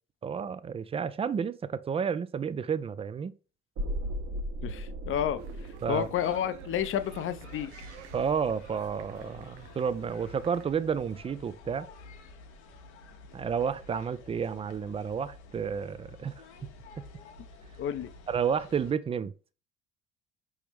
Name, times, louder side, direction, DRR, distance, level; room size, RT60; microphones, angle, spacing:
voice 1, 0.2-3.3 5.8-6.1 8.1-11.9 13.3-16.4 18.3-19.3, right 7 dB, 20° right, 0.3 m, -31 dB
sound 1, 3.8-9.7 10.1-10.2, right 1 dB, 50° right, 1.3 m, -39 dB
voice 2, 4.6-5.4 5.9-7.7 17.8-18.1, left 10 dB, 40° left, 0.6 m, -30 dB
sound 2, 5.4-10.7, right 9 dB, 90° right, 0.5 m, -52 dB
sound 3, 6.7-18.9, left 3 dB, 80° left, 0.8 m, -50 dB
4.9 x 3.1 x 3.4 m
hypercardioid pair, 55°, 34 cm